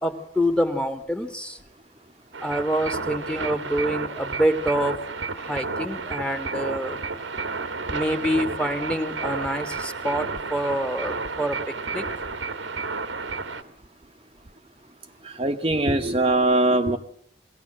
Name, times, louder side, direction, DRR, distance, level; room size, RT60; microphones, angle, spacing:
voice 1, 0.0-1.6 2.4-5.0 5.3-7.0 7.9-12.1, equal, 5° left, 1.6 m, -26 dB
sound 1, 2.3-13.6, right 4 dB, 90° right, 1.7 m, -31 dB
voice 2, 15.2-17.0, right 2 dB, 30° right, 1.1 m, -21 dB
22.0 x 17.5 x 7.8 m
head